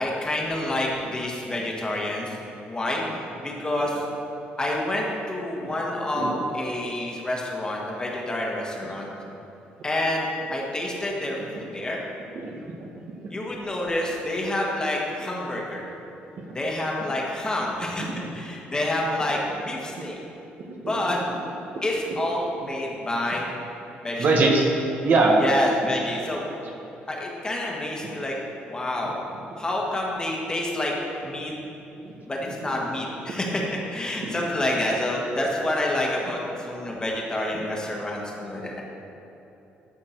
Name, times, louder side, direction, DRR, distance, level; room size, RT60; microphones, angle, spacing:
voice 1, 0.0-2.3 2.6-3.0 3.4-4.0 4.6-9.1 9.8-12.0 13.3-15.8 16.5-19.4 19.6-20.2 20.9-21.2 21.8-23.5 24.0-24.3 25.4-26.4 27.1-28.3 28.7-29.2 29.6-30.9 31.2-31.5 32.3-38.8, left 1 dB, 20° left, -2 dB, 1.5 m, -28 dB
voice 2, 24.2-24.7 25.0-25.3 34.2-34.3, right 3 dB, 55° right, 0 dB, 1.1 m, -20 dB
12.5 x 4.4 x 4.5 m, 2.9 s
cardioid pair, 100°, 4 cm